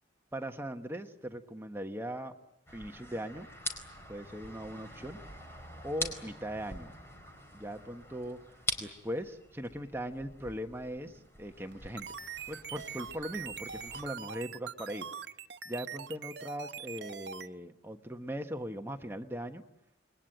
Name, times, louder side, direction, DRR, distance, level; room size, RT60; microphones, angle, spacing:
voice 1, 0.3-2.3 2.7-3.5 4.1-5.2 5.8-6.9 7.5-8.4 8.8-12.1 12.5-15.1 15.6-19.6, equal, 15° right, 5 dB, 1.3 m, -39 dB
sound 1, 2.7-14.1, left 1 dB, 15° left, 4.4 m, -44 dB
sound 2, 11.7-17.5, right 7 dB, 70° right, 1.0 m, -42 dB
29.0 x 22.0 x 9.0 m, 0.88 s
head